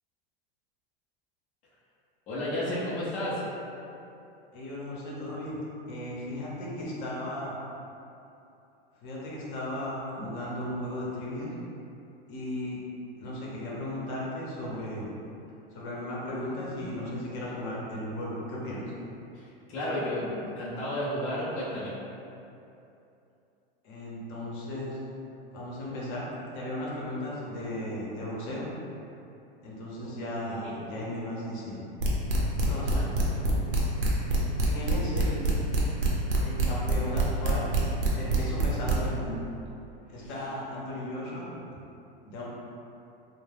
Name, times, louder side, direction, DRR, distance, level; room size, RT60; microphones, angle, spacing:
voice 1, 2.3-3.4 19.3-21.9 30.0-30.1 30.4-30.8 32.9-33.0 33.3-33.4 40.2-40.3, left 1 dB, 25° left, -10 dB, 0.6 m, -32 dB
voice 2, 4.5-5.6 5.9-7.6 9.0-11.5 12.3-12.8 13.2-15.1 15.7-18.8 23.8-25.0 25.5-26.3 26.5-28.7 29.6-31.8 32.7-33.0 34.6-35.4 36.4-37.7 38.1-39.4 40.1-41.5 42.2-42.4, left 1 dB, 55° left, -5 dB, 0.8 m, -36 dB
sound 1, 32.0-38.9, right 3 dB, 60° right, 0.7 m, -25 dB
2.3 x 2.1 x 3.3 m, 2.8 s
hypercardioid pair, 125°, 30 cm